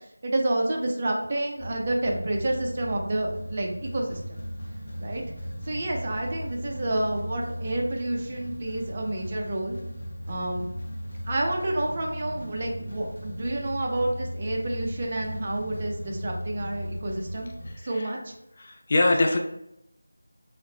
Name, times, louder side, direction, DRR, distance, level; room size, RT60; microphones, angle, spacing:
voice 1, 0.0-4.4 5.0-5.2 5.6-9.8 10.3-10.6 11.3-17.5 17.8-18.3, right 1 dB, 35° right, 0 dB, 0.6 m, -29 dB
sound 1, 1.6-17.8, equal, 50° left, 1.0 m, -37 dB
voice 2, 18.6-19.4, left 2 dB, 35° left, 3 dB, 0.3 m, -23 dB
3.7 x 2.1 x 3.2 m, 0.84 s
figure-of-eight pair, 170°, 0 cm